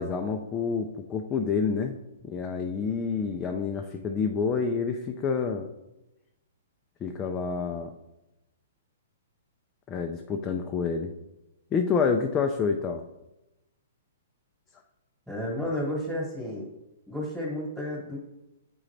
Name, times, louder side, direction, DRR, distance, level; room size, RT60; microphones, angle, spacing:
voice 1, 0.0-2.0 2.2-5.7 7.0-7.9 9.9-11.1 11.7-13.0, left 5 dB, 20° left, 4 dB, 0.4 m, -28 dB
voice 2, 15.3-16.7 17.1-18.2, left 1 dB, 5° right, -5 dB, 1.4 m, -32 dB
8.5 x 3.8 x 3.3 m, 0.92 s
hypercardioid pair, 155°, 0 cm